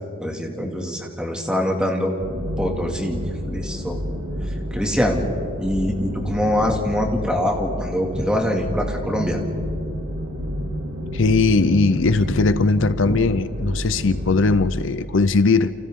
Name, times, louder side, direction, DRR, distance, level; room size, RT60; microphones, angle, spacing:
voice 1, 0.2-2.1 2.6-4.0 4.7-5.2 5.6-9.4 13.1-13.2, left 1 dB, 5° right, 1 dB, 2.3 m, -24 dB
sound 1, 2.2-14.4, equal, 85° right, 2.6 m, -29 dB
voice 2, 11.1-15.7, left 3 dB, 65° left, 13 dB, 0.6 m, -19 dB
29.5 x 29.5 x 3.7 m, 2.5 s
head